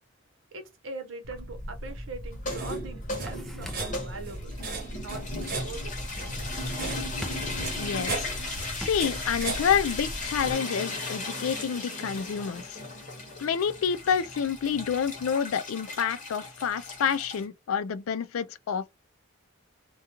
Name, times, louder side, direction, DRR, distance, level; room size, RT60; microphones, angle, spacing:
voice 1, 0.5-4.5 5.0-6.1, right 3 dB, 70° right, 0.8 m, -42 dB
sound 1, 1.2-10.5, right 2 dB, 45° right, 0.9 m, -37 dB
sound 2, 2.3-17.4, left 2 dB, 35° left, 0.9 m, -36 dB
sound 3, 3.3-4.1 6.3-7.0 7.2-7.7 8.2-9.2, equal, ahead, 0.3 m, -44 dB
voice 2, 7.8-8.3 8.8-12.8 13.4-18.9, left 7 dB, 90° left, 0.4 m, -28 dB
2.3 x 2.3 x 2.9 m
head